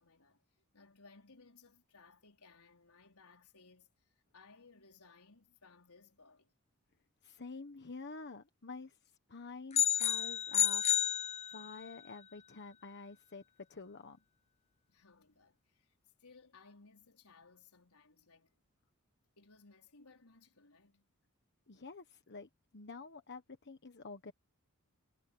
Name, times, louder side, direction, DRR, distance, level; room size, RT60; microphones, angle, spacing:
voice 1, 0.0-6.5 14.9-15.9 16.2-18.5 19.4-21.1, left 4 dB, 80° left, 4.7 m, -62 dB
voice 2, 7.2-9.0 9.3-11.1 11.5-13.4 13.7-14.2 21.7-24.3, left 4 dB, 50° left, 1.2 m, -49 dB
sound 1, 9.7-11.9, left 10 dB, 30° left, 0.4 m, -31 dB
head